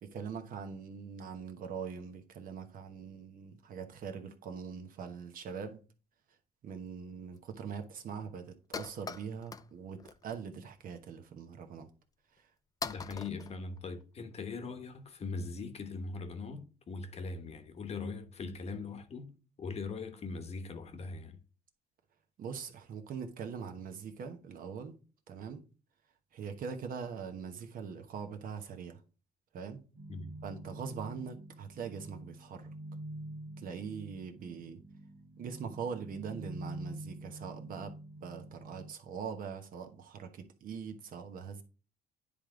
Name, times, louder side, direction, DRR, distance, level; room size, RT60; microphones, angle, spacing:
voice 1, 0.0-5.8 6.6-11.9 22.4-25.0 25.3-25.6 26.3-29.0 29.5-29.8 30.4-32.7 33.6-34.8 35.4-41.6, right 6 dB, 55° right, 1.1 m, -42 dB
sound 1, 6.7-6.8 7.4-7.5 7.7-7.8 8.1-8.2 8.5-9.7 10.0-10.4 10.8-11.0 11.7-11.8 12.4-12.5 12.8-14.3, left 5 dB, 20° left, 0.4 m, -42 dB
voice 2, 12.8-21.4 30.1-30.3, left 4 dB, 40° left, 1.1 m, -41 dB
sound 2, 29.9-38.9, right 1 dB, 80° right, 1.7 m, -47 dB
9.8 x 3.5 x 3.7 m
cardioid pair, 110°, 17 cm